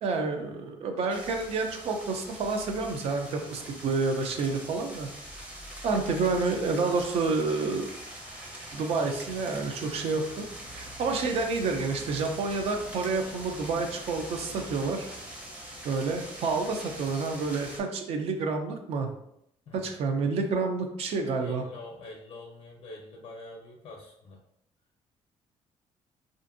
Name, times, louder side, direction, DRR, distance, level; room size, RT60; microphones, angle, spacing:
voice 1, 0.0-5.1 5.8-7.9 8.7-10.5 10.7-15.1 15.8-19.1 19.7-21.6, right 4 dB, 60° right, 4 dB, 0.4 m, -29 dB
sound 1, 1.1-17.8, right 1 dB, 10° right, 0.6 m, -43 dB
voice 2, 3.5-3.9 4.4-4.6 19.7-19.9 21.4-24.4, left 2 dB, 60° left, 0 dB, 0.5 m, -46 dB
2.5 x 2.5 x 2.5 m, 0.77 s
cardioid pair, 135°, 11 cm